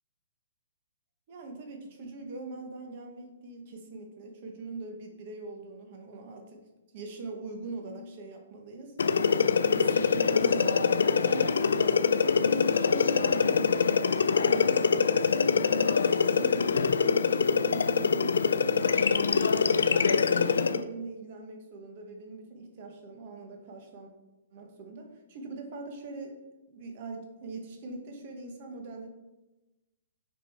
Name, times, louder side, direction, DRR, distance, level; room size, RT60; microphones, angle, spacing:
voice 1, 1.3-6.6 6.9-9.0 9.7-12.2 12.7-14.0 14.4-16.0 16.3-24.1 24.5-26.3 26.7-29.1, right 3 dB, 30° right, 3 dB, 0.9 m, -42 dB
sound 1, 9.0-20.8, left 5 dB, 85° left, 0.4 m, -24 dB
7.4 x 5.4 x 3.4 m, 1.0 s
hypercardioid pair, 180°, 0 cm